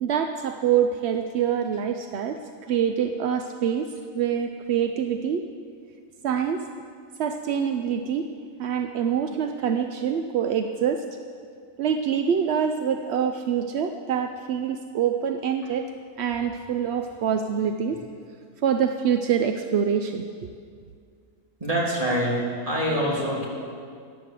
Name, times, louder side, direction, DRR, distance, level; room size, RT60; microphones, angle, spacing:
voice 1, 0.0-5.4 6.2-6.6 7.2-8.3 8.6-11.1 11.8-15.9 16.2-18.0 18.6-20.5, right 8 dB, 60° right, 7 dB, 0.7 m, -25 dB
voice 2, 21.6-23.5, equal, 20° right, -5 dB, 3.2 m, -25 dB
14.5 x 10.5 x 7.5 m, 2.2 s
omnidirectional pair, 1.7 m